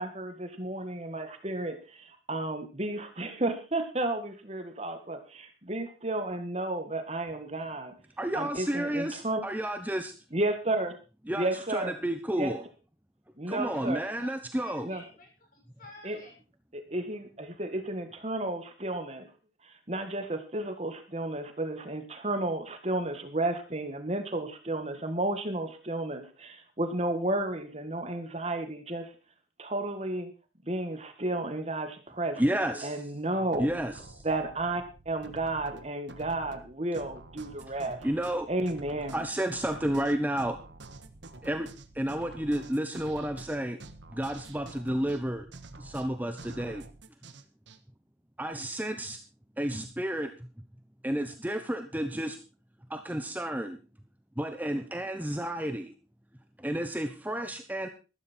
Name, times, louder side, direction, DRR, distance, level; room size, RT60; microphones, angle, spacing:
voice 1, 0.0-8.0 8.4-9.4 10.3-10.9 11.3-11.9 12.4-12.5 13.4-14.0 14.8-15.0 16.0-16.2 16.7-19.3 19.6-29.2 29.6-30.3 30.6-32.5 32.8-33.7 34.2-38.1 38.5-39.3, right 2 dB, 35° right, 7 dB, 1.8 m, -32 dB
voice 2, 8.2-10.1 11.3-11.5 11.7-12.6 13.5-14.9 32.4-32.9 33.6-34.2 38.0-38.5 39.1-40.6 41.4-41.7 41.9-43.8 44.1-45.5 45.8-46.8 48.4-49.2 49.6-50.3 51.0-52.4 52.9-53.8 54.4-55.9 56.6-57.9, right 1 dB, 10° right, 7 dB, 1.0 m, -31 dB
voice 3, 14.2-16.3, left 2 dB, 45° left, 1 dB, 7.1 m, -51 dB
sound 1, 33.5-47.8, right 2 dB, 75° right, 1.5 m, -48 dB
14.0 x 13.0 x 4.5 m, 0.33 s
head